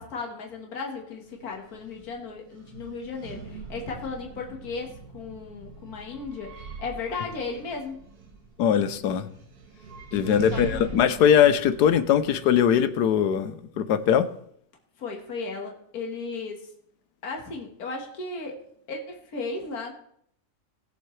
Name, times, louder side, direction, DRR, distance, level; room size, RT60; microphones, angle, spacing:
voice 1, 0.0-8.0 10.1-10.9 15.0-16.7 17.2-18.6 18.9-19.9, left 4 dB, 65° left, 2.1 m, -35 dB
sound 1, 1.2-13.3, right 2 dB, 70° right, 1.7 m, -42 dB
voice 2, 8.6-9.3 10.1-14.3, left 9 dB, 80° left, 1.3 m, -21 dB
19.5 x 7.2 x 3.2 m
omnidirectional pair, 1.7 m